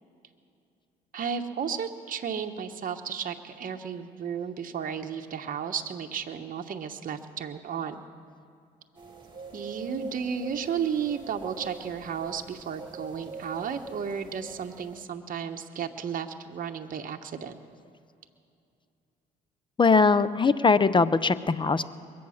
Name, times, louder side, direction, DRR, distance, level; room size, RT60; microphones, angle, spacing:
voice 1, 1.1-8.0 9.5-17.6, right 7 dB, 45° right, 5 dB, 1.0 m, -33 dB
sound 1, 8.9-15.0, right 4 dB, 25° right, 2.2 m, -44 dB
voice 2, 19.8-21.8, left 4 dB, 25° left, 16 dB, 0.6 m, -21 dB
22.0 x 8.6 x 6.4 m, 2.5 s
supercardioid pair, 65°, 19 cm